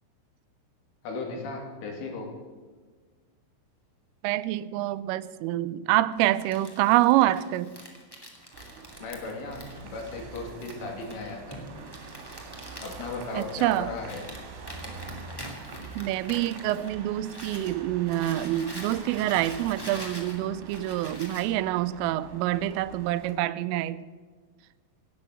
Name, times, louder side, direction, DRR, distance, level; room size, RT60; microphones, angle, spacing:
voice 1, 1.0-2.3 9.0-11.7 12.8-14.3, left 3 dB, 75° left, 5.2 m, -36 dB
voice 2, 4.2-7.7 13.4-13.9 16.0-24.0, right 14 dB, 85° right, 3.2 m, -26 dB
Crumpling crinkling, 6.1-17.7 18.0-21.5, equal, 20° left, 0.6 m, -45 dB
sound 1, 8.5-23.3, right 4 dB, 60° right, 3.8 m, -45 dB
18.0 x 10.5 x 6.5 m
omnidirectional pair, 5.7 m